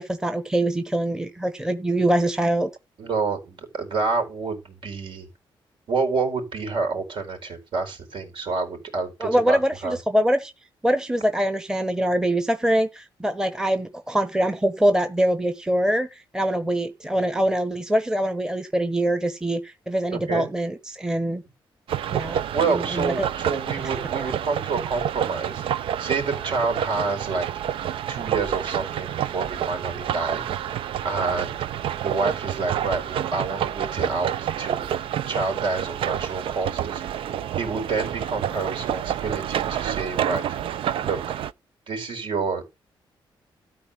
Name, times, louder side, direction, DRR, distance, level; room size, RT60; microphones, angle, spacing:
voice 1, 0.0-2.7 9.2-10.5 10.8-21.4 22.1-22.4 22.7-23.3 24.2-24.3, right 1 dB, 5° right, 1.0 m, -24 dB
voice 2, 3.0-5.3 5.9-10.0 20.1-20.5 22.3-27.8 28.1-30.4 31.0-31.6 32.0-35.0 35.3-37.3 37.6-40.4 41.0-41.3 41.9-42.6, right 4 dB, 65° right, 4.7 m, -28 dB
sound 1, 21.9-41.5, right 10 dB, 85° right, 0.6 m, -28 dB
13.0 x 4.6 x 7.4 m
cardioid pair, 140°, 9 cm